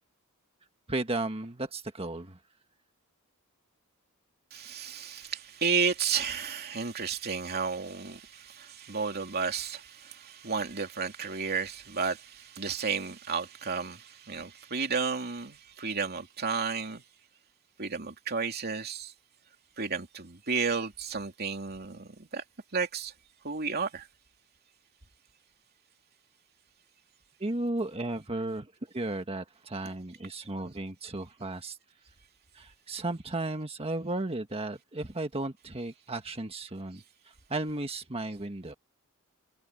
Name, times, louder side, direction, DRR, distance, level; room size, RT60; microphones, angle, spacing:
voice 1, 0.9-2.4 27.4-31.8 32.5-38.7, right 2 dB, 25° right, 1.5 m, -34 dB
voice 2, 4.5-17.0 17.8-19.1 19.8-22.4 22.7-23.1 23.4-24.1, right 5 dB, 50° right, 2.8 m, -32 dB
head